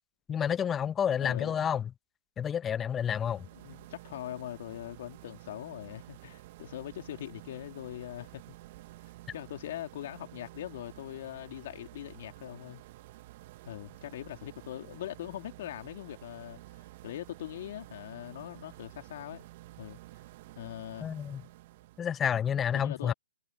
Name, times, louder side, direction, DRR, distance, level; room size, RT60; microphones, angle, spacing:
voice 1, 0.3-1.9 2.4-3.5 21.0-21.4 22.0-23.1, left 8 dB, 15° left, 0.8 m, -29 dB
voice 2, 1.2-1.7 3.5-8.5 9.3-12.8 13.6-16.6 17.0-19.5 19.8-20.0 20.6-21.1 22.7-23.1, left 12 dB, 45° left, 3.2 m, -41 dB
sound 1, 2.9-22.3, right 17 dB, 40° right, 1.3 m, -51 dB
hypercardioid pair, 135°, 0 cm